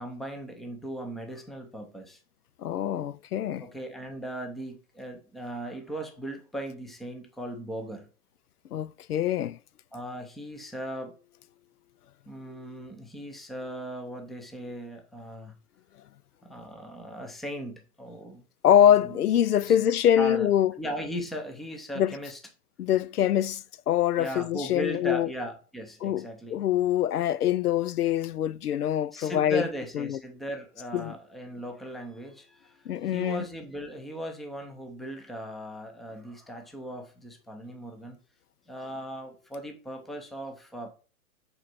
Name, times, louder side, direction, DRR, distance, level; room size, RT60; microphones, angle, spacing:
voice 1, 0.0-2.2 3.6-8.1 9.9-11.2 12.3-15.6 16.4-18.4 19.0-19.2 19.6-19.8 20.2-20.5 20.8-22.4 24.2-26.6 29.1-38.2 38.7-40.9, equal, ahead, 0.5 m, -38 dB
voice 2, 2.6-3.6 8.7-9.6 18.6-20.7 22.0-22.2 22.8-25.3 26.0-26.3 26.5-29.6 30.0-30.2 30.9-31.1 32.9-33.4, left 10 dB, 90° left, 0.6 m, -24 dB
7.9 x 4.4 x 6.1 m
hypercardioid pair, 140°, 45 cm